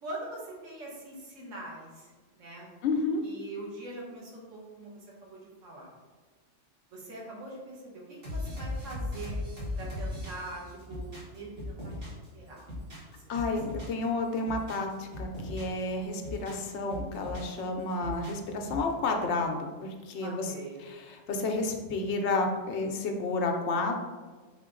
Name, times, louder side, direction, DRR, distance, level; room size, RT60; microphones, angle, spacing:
voice 1, 0.0-2.7 3.2-5.9 6.9-9.4 9.8-12.0 12.3-12.6 13.2-13.4 20.2-20.8, right 2 dB, 85° right, -3 dB, 1.4 m, -43 dB
voice 2, 2.8-3.2 13.3-20.5 20.8-24.0, left 3 dB, 70° left, 3 dB, 0.8 m, -31 dB
sound 1, 8.2-12.3 12.6-14.0 14.3-15.8 16.1-17.6 17.9-18.9, left 1 dB, 50° right, 1.5 m, -38 dB
4.0 x 2.9 x 3.7 m, 1.4 s
omnidirectional pair, 1.3 m